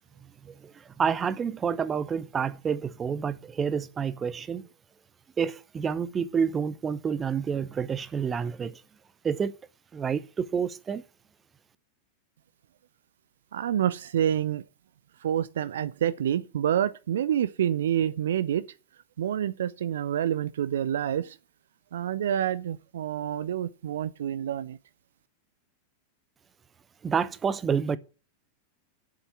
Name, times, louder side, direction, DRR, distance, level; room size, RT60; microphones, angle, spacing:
voice 1, 0.4-4.7 5.4-8.8 9.2-9.5 9.9-11.0 27.0-28.0, right 6 dB, 20° right, 0.8 m, -29 dB
voice 2, 13.5-14.6 15.2-18.6 19.2-21.3 21.9-24.8, right 10 dB, 60° right, 0.5 m, -27 dB
8.0 x 7.8 x 8.3 m
figure-of-eight pair, 90°, 0 cm